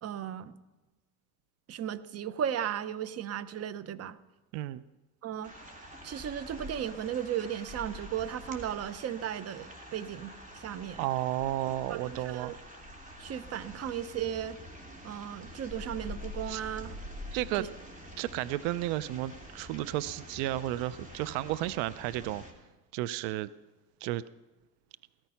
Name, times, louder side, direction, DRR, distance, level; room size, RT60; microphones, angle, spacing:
voice 1, 0.0-0.6 1.7-4.2 5.2-5.5 6.0-11.0 11.9-12.6 13.2-14.6 15.0-17.0 17.6-17.7, right 9 dB, 30° right, 16 dB, 0.8 m, -35 dB
sound 1, 5.4-22.5, left 1 dB, 15° right, 2.9 m, -46 dB
voice 2, 11.0-12.5 16.5-16.6 17.3-17.7 18.2-22.4 22.9-23.5 24.0-24.2, right 15 dB, 65° right, 17 dB, 0.6 m, -32 dB
17.0 x 13.5 x 5.7 m, 1.1 s
supercardioid pair, 115°, 48 cm